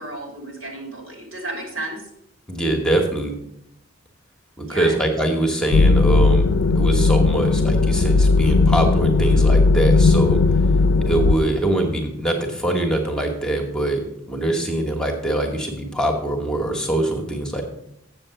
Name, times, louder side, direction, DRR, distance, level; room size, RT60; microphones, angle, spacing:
voice 1, 0.0-2.0 4.6-4.9, right 2 dB, 85° right, 1 dB, 3.3 m, -32 dB
voice 2, 2.5-3.3 4.6-10.4 11.1-14.0 14.3-17.6, right 1 dB, 5° left, 2 dB, 1.2 m, -23 dB
sound 1, 5.7-11.4, left 3 dB, 85° left, 0.5 m, -16 dB
7.7 x 6.9 x 6.7 m, 0.80 s
head